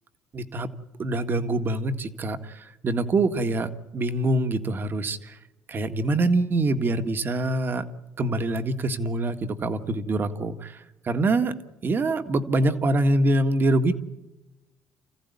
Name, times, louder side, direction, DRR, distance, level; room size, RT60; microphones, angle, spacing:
voice 1, 0.3-0.7 1.0-5.4 5.7-7.9 8.2-11.5 11.8-13.9, right 2 dB, 40° right, 8 dB, 1.8 m, -25 dB
28.5 x 15.0 x 9.8 m, 1.1 s
supercardioid pair, 75°, 5 cm